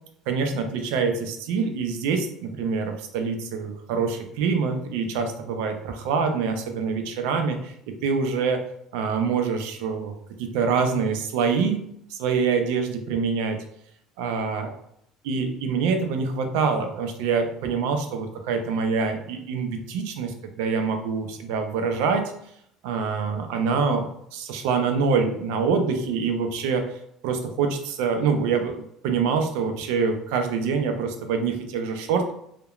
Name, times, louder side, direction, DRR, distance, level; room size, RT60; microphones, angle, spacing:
voice 1, 0.3-7.7 8.0-8.6 8.9-10.1 10.4-11.8 12.1-13.6 14.2-14.7 15.2-22.3 22.8-26.9 27.2-32.3, right 5 dB, 85° right, 5 dB, 0.4 m, -25 dB
2.8 x 2.1 x 2.3 m, 0.72 s
cardioid pair, 110°, 0 cm